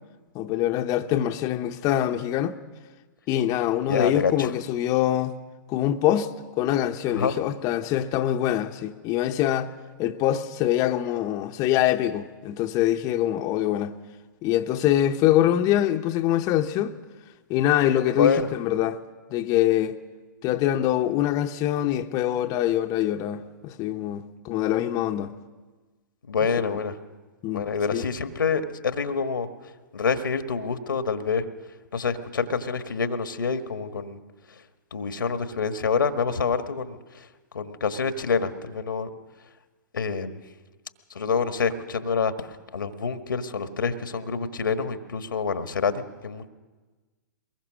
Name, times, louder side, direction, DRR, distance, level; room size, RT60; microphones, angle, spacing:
voice 1, 0.3-2.6 3.3-5.4 5.7-9.7 10.0-14.0 14.4-16.9 17.5-19.0 19.3-20.0 20.4-25.3 26.6-26.8 27.4-27.6 27.9-28.1, left 12 dB, 35° left, 0.9 m, -24 dB
voice 2, 3.9-4.5 7.1-7.3 18.1-18.5 26.3-26.9 27.5-29.5 29.9-31.5 31.9-34.2 34.9-37.3 37.5-39.1 39.9-40.4 41.1-46.5, left 5 dB, 85° left, 1.5 m, -27 dB
23.0 x 21.0 x 6.3 m
hypercardioid pair, 115°, 11 cm